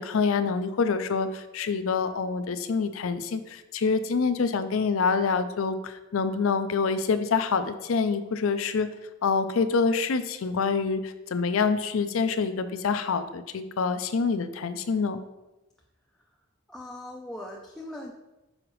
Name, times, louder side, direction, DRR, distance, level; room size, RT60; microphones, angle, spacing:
voice 1, 0.0-8.9 9.2-15.2, left 5 dB, 75° left, 10 dB, 0.5 m, -26 dB
voice 2, 16.7-18.1, left 1 dB, 5° left, -1 dB, 0.4 m, -40 dB
6.3 x 4.9 x 3.1 m, 1.0 s
head